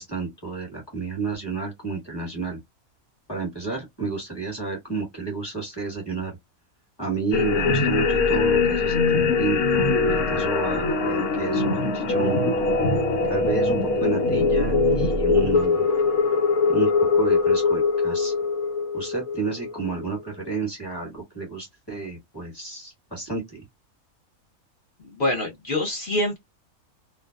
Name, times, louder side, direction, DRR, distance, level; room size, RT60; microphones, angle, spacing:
voice 1, 0.0-2.6 3.3-6.4 7.0-12.5 13.3-15.9 16.7-18.3 18.9-23.6, right 4 dB, 20° left, 1.0 m, -31 dB
sound 1, 7.3-20.0, left 4 dB, 85° left, 1.2 m, -22 dB
voice 2, 25.0-26.4, left 1 dB, 45° left, 0.7 m, -26 dB
2.5 x 2.1 x 2.2 m
omnidirectional pair, 1.5 m